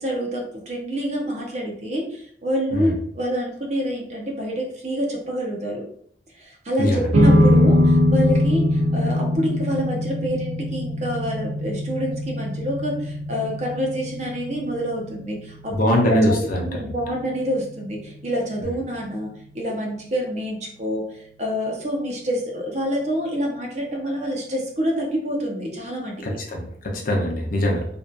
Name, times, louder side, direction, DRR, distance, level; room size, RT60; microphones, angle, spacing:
voice 1, 0.0-5.9 6.4-6.9 7.1-16.3 16.6-21.0 21.4-26.1, equal, 40° right, 0 dB, 0.6 m, -27 dB
voice 2, 6.8-7.1 15.7-16.9 26.2-27.9, equal, 50° left, 0 dB, 0.5 m, -22 dB
sound 1, 7.1-19.6, left 1 dB, 90° right, 0.5 m, -23 dB
2.6 x 2.3 x 2.2 m, 0.64 s
head